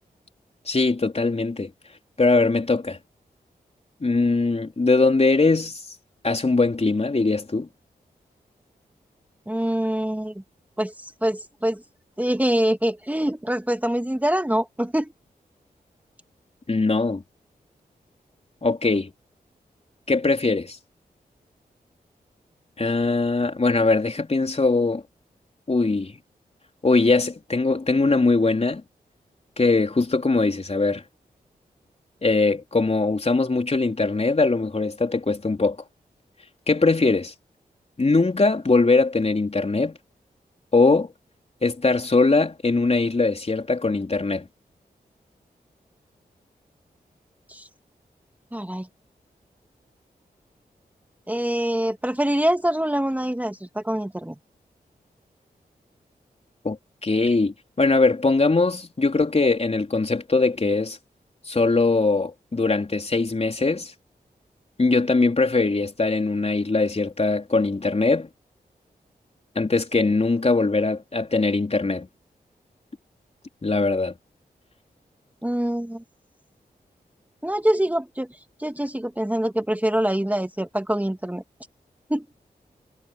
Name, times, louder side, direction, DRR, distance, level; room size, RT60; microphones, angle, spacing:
voice 1, 0.7-1.7 2.2-3.0 4.0-5.8 6.2-7.7 16.7-17.2 18.6-19.1 20.1-20.8 22.8-25.0 25.7-26.1 26.8-28.8 29.6-31.0 32.2-35.8 36.7-37.3 38.0-40.0 40.7-41.1 41.6-44.4 56.6-56.8 57.0-61.0 61.5-63.9 64.8-68.3 69.6-72.1 73.6-74.1, left 3 dB, 40° left, 4.1 m, -21 dB
voice 2, 9.5-10.3 10.8-11.8 12.2-15.1 47.5-47.7 48.5-48.9 51.3-54.3 57.2-57.3 75.4-76.0 77.4-78.3 78.6-81.4 82.1-82.3, right 1 dB, 10° right, 2.1 m, -24 dB
cardioid pair, 50°, 16 cm